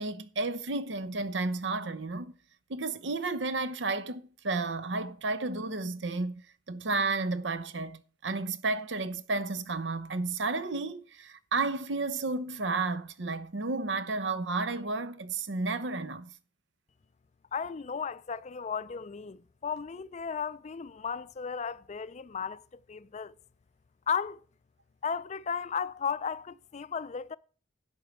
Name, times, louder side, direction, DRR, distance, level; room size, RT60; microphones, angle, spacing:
voice 1, 0.0-2.3 2.7-6.4 6.7-16.3, right 3 dB, 70° right, 0.8 m, -32 dB
voice 2, 17.5-22.6 22.9-23.3 24.1-24.4 25.0-27.4, left 6 dB, 40° left, 0.4 m, -35 dB
11.0 x 4.5 x 8.0 m
head